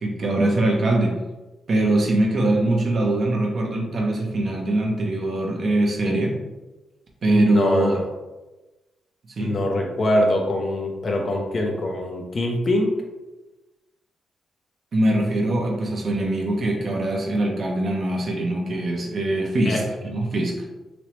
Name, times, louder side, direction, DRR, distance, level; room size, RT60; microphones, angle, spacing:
voice 1, 0.0-1.2 1.7-6.3 7.2-8.0 9.4-9.5 14.9-20.7, right 1 dB, 55° right, 0 dB, 0.8 m, -22 dB
voice 2, 7.3-8.1 9.4-13.0 19.7-19.8, left 1 dB, 45° left, 1 dB, 0.8 m, -23 dB
3.1 x 2.8 x 3.2 m, 1.1 s
supercardioid pair, 55°, 0 cm